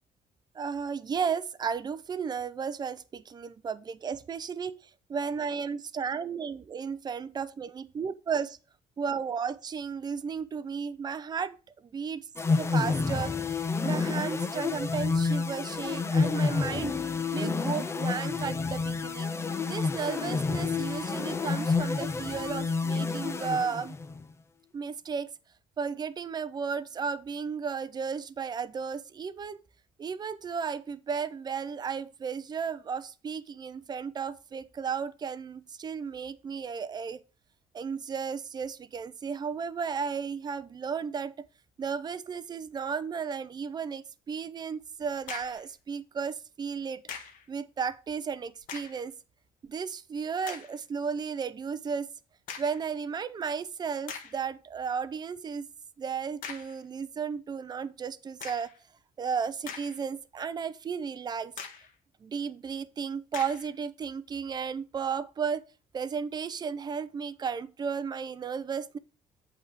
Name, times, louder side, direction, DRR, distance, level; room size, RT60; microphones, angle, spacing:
voice 1, 0.5-4.8 5.1-8.6 9.0-11.6 11.8-13.3 13.8-16.9 17.3-19.3 19.6-24.0 24.7-25.3 25.8-29.6 30.0-37.2 37.7-41.5 41.8-47.0 47.5-49.1 49.7-52.1 52.6-55.7 56.0-58.7 59.2-61.5 62.2-65.6 65.9-69.0, right 6 dB, 30° right, 0.6 m, -34 dB
sound 1, 12.4-24.2, left 4 dB, 20° left, 0.5 m, -29 dB
sound 2, 45.0-45.7 47.1-47.5 48.6-49.1 49.7-49.8 50.4-50.8 52.5-52.9 53.5-53.6 54.1-54.5 56.4-56.8 58.4-58.8 59.4-60.2 60.6-60.7 61.6-61.9 63.3-63.7, left 7 dB, 75° left, 1.3 m, -42 dB
8.3 x 3.5 x 6.7 m
cardioid pair, 150°, 14 cm